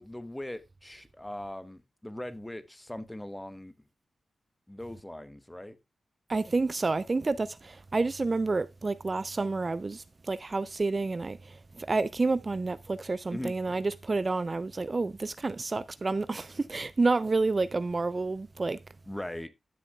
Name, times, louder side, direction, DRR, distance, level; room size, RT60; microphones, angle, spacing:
voice 1, 0.0-3.7 4.7-5.8 13.3-13.5 19.1-19.5, left 1 dB, 15° left, 1.0 m, -40 dB
voice 2, 6.3-18.8, right 3 dB, 40° right, 0.4 m, -29 dB
12.5 x 7.1 x 2.3 m
cardioid pair, 65°, 0 cm